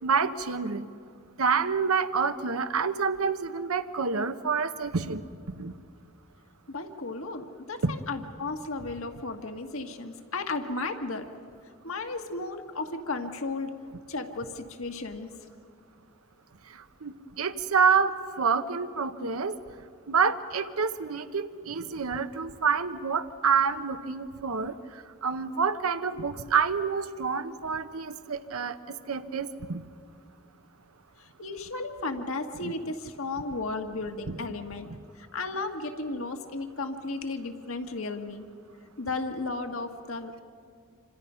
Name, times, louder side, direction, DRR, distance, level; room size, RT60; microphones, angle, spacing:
voice 1, 0.0-0.9 1.4-5.7 7.8-7.9 16.7-18.1 18.4-19.5 20.1-28.8 29.1-29.8 32.6-32.7 34.3-34.4, right 5 dB, 90° right, 10 dB, 0.9 m, -28 dB
voice 2, 6.7-11.3 11.8-13.7 14.1-15.3 31.2-34.9 35.2-38.4 39.0-40.4, left 3 dB, 75° left, 5 dB, 1.7 m, -34 dB
27.5 x 26.5 x 5.7 m, 2.3 s
head